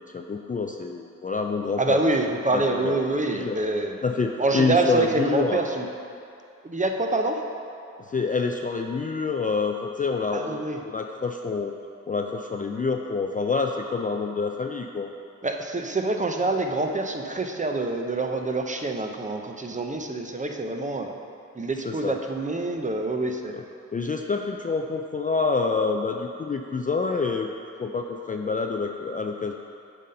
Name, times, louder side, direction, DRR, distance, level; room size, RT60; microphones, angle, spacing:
voice 1, 0.0-2.0 2.5-3.0 3.3-3.6 4.0-5.6 8.1-11.7 12.1-15.1 21.8-22.1 23.5-23.6 23.9-27.5 27.8-29.5, left 4 dB, 25° left, 3 dB, 0.3 m, -27 dB
voice 2, 1.8-4.0 4.4-5.9 6.6-7.4 10.3-10.8 15.4-21.1 21.5-23.6, right 2 dB, 20° right, 3 dB, 0.6 m, -26 dB
7.4 x 4.1 x 5.3 m, 2.5 s
cardioid pair, 70°, 34 cm